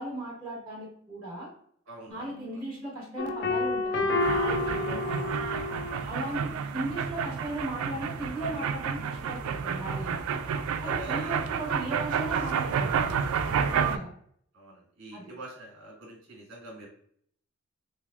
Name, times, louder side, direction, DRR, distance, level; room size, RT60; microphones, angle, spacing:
voice 1, 0.0-1.5 2.1-5.3 6.0-10.3 10.8-13.1 13.4-14.1 15.1-15.3, right 1 dB, 10° right, -7 dB, 1.2 m, -37 dB
voice 2, 1.9-2.3 4.8-5.1 5.9-6.1 10.8-11.4 12.9-13.3 13.8-14.0 14.5-16.9, right 1 dB, 60° right, -2 dB, 1.2 m, -45 dB
sound 1, 2.1-9.5, right 1 dB, 30° left, 1.3 m, -52 dB
sound 2, 3.2-6.0, left 2 dB, 55° left, 0.4 m, -29 dB
sound 3, 4.2-14.0, right 6 dB, 85° right, 0.3 m, -30 dB
3.3 x 3.3 x 2.4 m, 0.64 s
head